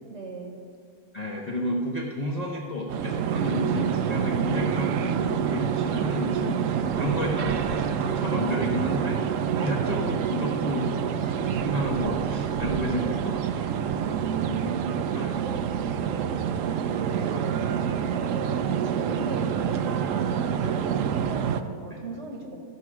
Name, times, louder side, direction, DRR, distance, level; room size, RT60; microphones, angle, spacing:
voice 1, 0.1-0.5 9.5-9.8 14.0-15.3 15.6-15.9 16.9-22.6, right 3 dB, 45° right, 1 dB, 1.1 m, -38 dB
voice 2, 1.1-10.9 11.3-13.7 15.1-15.3 20.6-20.7 21.9-22.0, left 1 dB, 40° left, -2 dB, 0.6 m, -31 dB
sound 1, 2.9-21.6, right 8 dB, 85° right, 0.7 m, -27 dB
14.0 x 4.8 x 6.0 m, 2.2 s
omnidirectional pair, 1.9 m